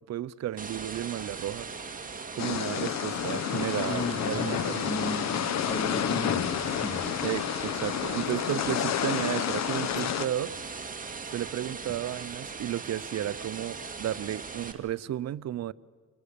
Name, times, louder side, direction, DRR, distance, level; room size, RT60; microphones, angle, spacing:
voice 1, 0.1-1.7 2.3-5.0 7.2-10.5 11.3-15.7, right 12 dB, 60° right, 0.6 m, -33 dB
sound 1, 0.6-14.7, right 4 dB, 25° right, 2.1 m, -40 dB
sound 2, 2.4-10.3, left 10 dB, 60° left, 1.0 m, -30 dB
voice 2, 3.9-4.6 4.8-5.3 5.6-7.1, left 1 dB, 15° left, 2.9 m, -34 dB
Wind instrument woodwind instrument, 6.7-10.7, left 10 dB, 85° left, 1.2 m, -43 dB
26.5 x 20.0 x 6.8 m
cardioid pair, 90°, 30 cm